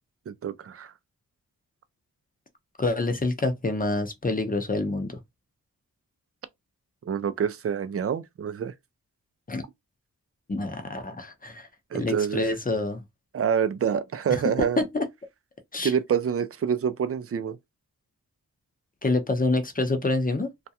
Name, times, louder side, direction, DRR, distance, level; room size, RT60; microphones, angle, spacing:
voice 1, 0.3-0.9 7.1-8.7 11.9-12.5 13.3-14.8 15.8-17.6, right 7 dB, 40° right, 0.4 m, -27 dB
voice 2, 2.8-5.2 9.5-9.6 10.5-11.7 11.9-13.0 14.3-15.0 15.7-15.9 19.0-20.5, left 2 dB, 25° left, 0.7 m, -27 dB
2.3 x 2.2 x 2.8 m
cardioid pair, 55°, 35 cm